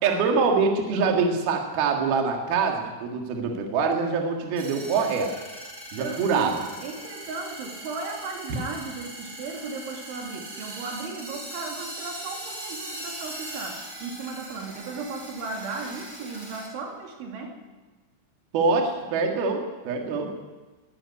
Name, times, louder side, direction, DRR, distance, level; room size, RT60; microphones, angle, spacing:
voice 1, 0.0-5.3 5.9-6.6 18.5-20.3, right 4 dB, 60° right, 2 dB, 3.5 m, -24 dB
voice 2, 0.6-1.2 6.0-17.6, right 4 dB, 75° right, 1 dB, 5.2 m, -36 dB
sound 1, 4.6-16.7, right 1 dB, 10° right, 4.0 m, -40 dB
21.0 x 13.0 x 9.6 m, 1.2 s
omnidirectional pair, 5.6 m